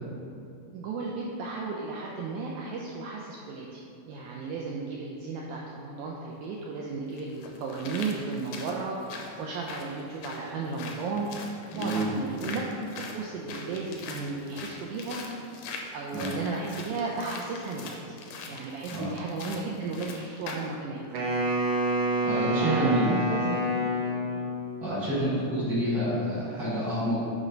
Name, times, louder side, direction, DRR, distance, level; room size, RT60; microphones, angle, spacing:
voice 1, 0.7-11.3 11.8-12.6 13.1-15.2 15.9-18.2 18.5-21.1 22.4-23.7, right 4 dB, 90° right, -2 dB, 1.7 m, -34 dB
sound 1, 6.3-6.4 7.2-20.7 21.1-21.2, left 4 dB, 85° left, 1.6 m, -42 dB
voice 2, 11.7-12.4 16.1-16.3 18.9-19.1 22.2-23.1 24.8-27.2, right 1 dB, 50° right, -13 dB, 1.1 m, -28 dB
Wind instrument woodwind instrument, 21.1-24.6, right 1 dB, 70° right, 1.6 m, -27 dB
7.4 x 3.2 x 5.1 m, 2.6 s
omnidirectional pair, 4.1 m